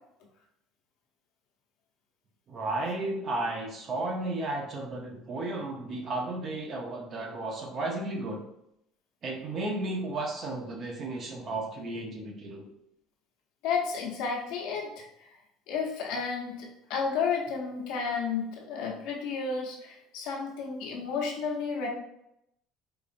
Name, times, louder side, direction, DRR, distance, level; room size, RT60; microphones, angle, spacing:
voice 1, 2.5-8.4 9.2-12.7, right 2 dB, 35° right, 1 dB, 0.7 m, -33 dB
voice 2, 13.6-15.0 15.7-21.9, left 5 dB, 75° left, -1 dB, 1.0 m, -32 dB
4.7 x 2.5 x 2.5 m, 0.80 s
cardioid pair, 140°, 0 cm